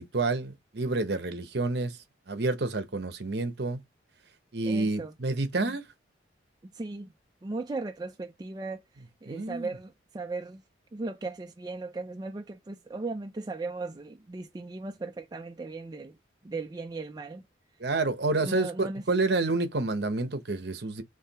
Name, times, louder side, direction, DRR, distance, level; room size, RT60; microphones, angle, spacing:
voice 1, 0.0-2.0 2.3-3.8 4.5-5.8 9.3-9.7 17.8-21.0, right 3 dB, 60° right, 0.9 m, -29 dB
voice 2, 4.6-5.1 5.6-5.8 6.7-7.1 7.4-8.8 9.2-10.6 10.9-16.2 16.4-17.4 18.4-19.0, right 3 dB, 20° right, 0.3 m, -37 dB
4.9 x 3.2 x 2.8 m
head